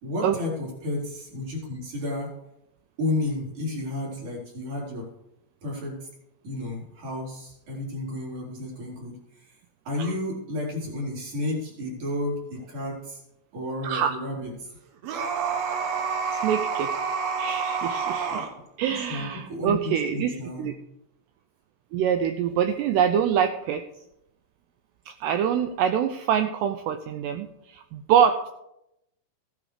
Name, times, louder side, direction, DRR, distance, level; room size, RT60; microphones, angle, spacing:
voice 1, 0.0-2.3 3.0-5.1 5.6-6.1 6.4-9.6 9.8-13.2 13.5-14.5 18.3-18.4 18.9-20.7, left 2 dB, 40° right, -2 dB, 4.9 m, -32 dB
voice 2, 13.8-14.2 16.3-16.9 17.4-18.4 18.8-20.7 21.9-23.8 25.1-28.5, right 8 dB, 85° right, 7 dB, 2.4 m, -25 dB
sound 1, 15.0-18.5, right 5 dB, 65° right, 2.8 m, -28 dB
15.5 x 10.0 x 5.0 m, 0.83 s
omnidirectional pair, 5.5 m